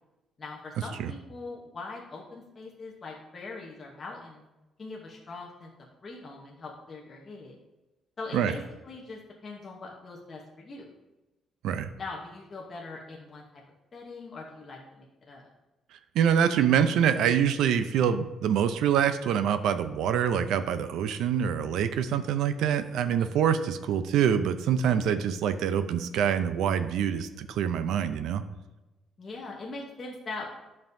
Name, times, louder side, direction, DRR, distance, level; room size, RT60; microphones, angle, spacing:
voice 1, 0.4-4.4 4.8-5.7 6.0-7.6 8.2-10.9 12.0-13.6 13.9-15.5 23.2-23.3 29.2-30.4, left 3 dB, 25° left, -3 dB, 0.9 m, -42 dB
voice 2, 16.2-28.4, right 8 dB, 80° right, 11 dB, 0.4 m, -25 dB
11.5 x 5.4 x 2.6 m, 1.1 s
cardioid pair, 180°, 0 cm